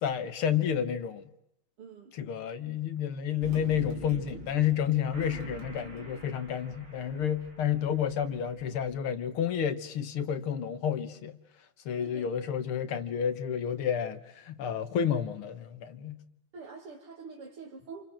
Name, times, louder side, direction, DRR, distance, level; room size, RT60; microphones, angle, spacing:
voice 1, 0.0-1.2 2.1-11.3 11.9-16.2, left 8 dB, 80° left, 2.3 m, -30 dB
voice 2, 1.8-2.2 12.0-12.6 16.5-18.0, right 4 dB, 90° right, 3.6 m, -45 dB
sound 1, 3.4-8.9, right 3 dB, 55° right, 4.4 m, -45 dB
28.5 x 26.5 x 7.5 m
omnidirectional pair, 2.4 m